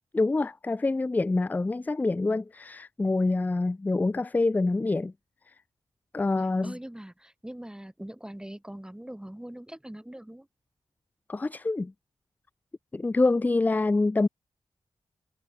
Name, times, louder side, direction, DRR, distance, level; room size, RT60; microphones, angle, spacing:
voice 1, 0.1-5.1 6.1-6.7 11.3-11.9 12.9-14.3, left 3 dB, 15° left, 0.3 m, -26 dB
voice 2, 6.6-10.5, right 1 dB, 5° right, 6.4 m, -42 dB
wide cardioid pair, 90°, 10 cm